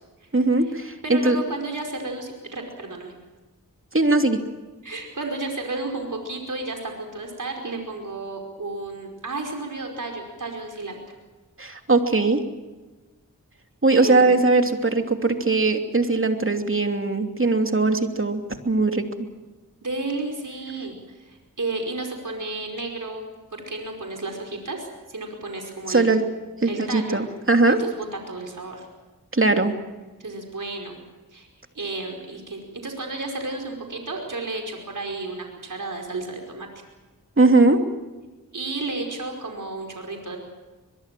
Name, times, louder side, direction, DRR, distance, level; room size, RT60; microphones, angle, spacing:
voice 1, 0.3-1.4 3.9-4.4 11.6-12.4 13.8-19.3 25.9-26.2 26.6-27.8 29.3-29.7 37.4-37.8, right 3 dB, 35° right, 5 dB, 2.9 m, -20 dB
voice 2, 1.0-3.1 4.8-11.0 13.9-14.4 19.8-26.1 26.6-27.2 27.8-28.9 30.2-31.0 31.3-31.5 31.8-36.7 38.5-40.4, right 2 dB, 60° right, 2 dB, 5.2 m, -32 dB
22.5 x 22.5 x 7.7 m, 1.2 s
cardioid pair, 40°, 35 cm